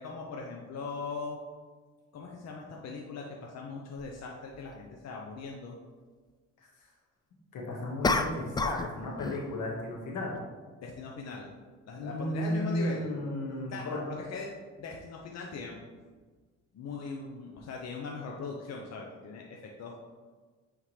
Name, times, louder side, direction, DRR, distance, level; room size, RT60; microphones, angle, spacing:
voice 1, 0.0-1.4 2.1-5.7 10.8-11.5 11.9-13.1 13.7-14.5 14.8-15.8 16.7-19.9, left 4 dB, 60° left, -1 dB, 0.8 m, -40 dB
sound 1, 4.0-4.1 8.0-8.9 9.2-9.5, left 3 dB, 15° left, 0.3 m, -28 dB
voice 2, 7.5-10.4 12.0-14.0, left 1 dB, 85° left, -2 dB, 1.6 m, -34 dB
8.9 x 3.8 x 3.2 m, 1.4 s
cardioid pair, 90°, 30 cm